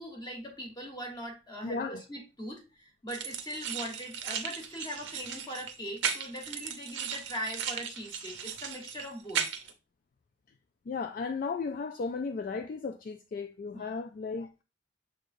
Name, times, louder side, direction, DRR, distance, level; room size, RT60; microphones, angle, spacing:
voice 1, 0.0-9.5 13.7-14.0, equal, 25° left, 1.2 m, -41 dB
voice 2, 1.6-2.0 10.9-14.6, left 4 dB, 50° left, 0.3 m, -35 dB
sound 1, 3.1-9.7, right 7 dB, 90° right, 0.7 m, -36 dB
6.5 x 3.2 x 2.6 m
head